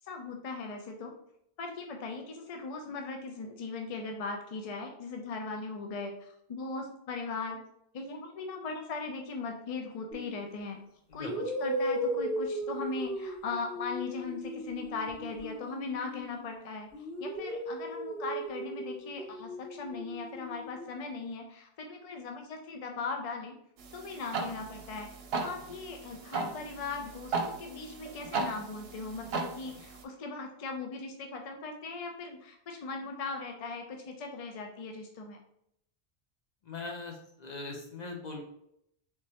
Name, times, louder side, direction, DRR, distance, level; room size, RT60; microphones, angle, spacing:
voice 1, 0.0-1.1 1.6-7.6 7.9-10.8 11.1-23.5 23.9-25.1 25.4-35.4, left 4 dB, 60° left, 3 dB, 0.3 m, -39 dB
sound 1, 10.1-10.4 11.2-16.5 16.9-20.9, equal, 90° left, 1.4 m, -37 dB
sound 2, 23.8-30.0, right 4 dB, 70° right, 0.8 m, -37 dB
voice 2, 36.6-38.4, left 3 dB, 45° left, 2 dB, 0.8 m, -40 dB
3.5 x 3.1 x 2.8 m, 0.75 s
omnidirectional pair, 1.1 m